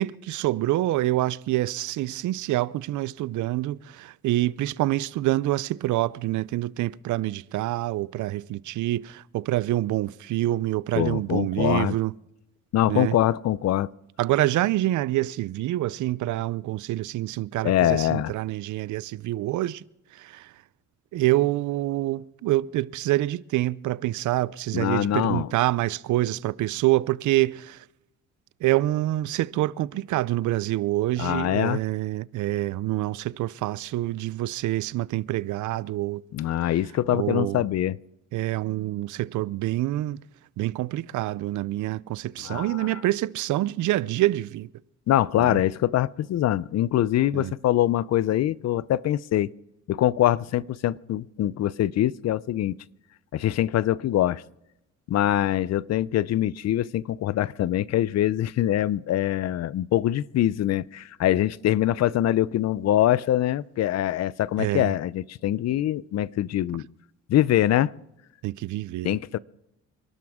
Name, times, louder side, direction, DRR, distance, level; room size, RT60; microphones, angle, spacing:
voice 1, 0.0-12.1 12.9-13.2 14.2-19.8 20.1-20.5 21.1-27.8 28.6-36.2 37.1-37.6 38.3-40.2 40.6-44.7 45.4-45.6 47.3-47.5 64.6-64.9 68.4-69.1, right 16 dB, 75° right, 0.5 m, -26 dB
voice 2, 11.0-12.0 12.7-13.9 17.6-18.3 24.7-25.5 31.2-31.8 36.3-38.0 42.4-43.0 45.1-49.5 49.9-52.8 53.3-54.4 55.1-66.8 67.3-67.9 69.0-69.4, left 13 dB, 60° left, 0.5 m, -24 dB
27.0 x 12.0 x 3.6 m
cardioid pair, 90°, 30 cm